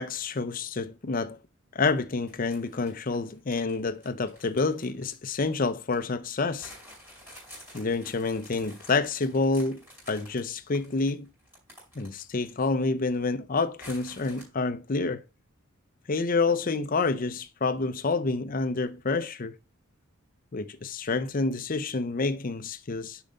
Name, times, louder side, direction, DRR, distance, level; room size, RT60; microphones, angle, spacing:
voice 1, 0.0-1.4 1.7-6.7 7.7-9.8 10.1-11.3 12.0-15.2 16.1-19.5 20.5-23.2, left 3 dB, 40° left, 0.6 m, -28 dB
sound 1, 2.3-6.0 6.6-12.7 13.0-13.1 13.8-14.4, equal, 10° right, 4.9 m, -50 dB
7.0 x 5.3 x 3.9 m
head